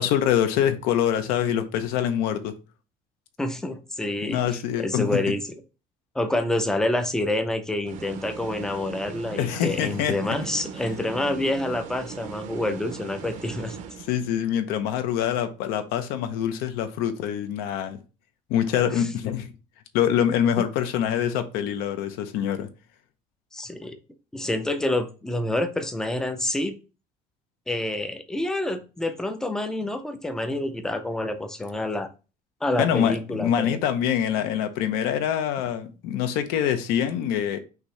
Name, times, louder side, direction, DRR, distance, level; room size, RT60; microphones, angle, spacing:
voice 1, 0.0-2.5 4.3-5.1 9.4-10.4 14.1-18.0 18.5-19.5 19.9-22.7 32.8-37.6, left 9 dB, 75° left, 0.7 m, -25 dB
voice 2, 3.4-5.5 6.1-13.8 18.9-19.1 20.6-20.7 23.5-24.0 24.3-26.8 27.7-32.1 32.6-33.7, left 1 dB, 5° left, 0.4 m, -27 dB
sound 1, 7.9-14.5, right 7 dB, 55° right, 0.6 m, -39 dB
5.8 x 2.8 x 3.2 m
cardioid pair, 175°, 16 cm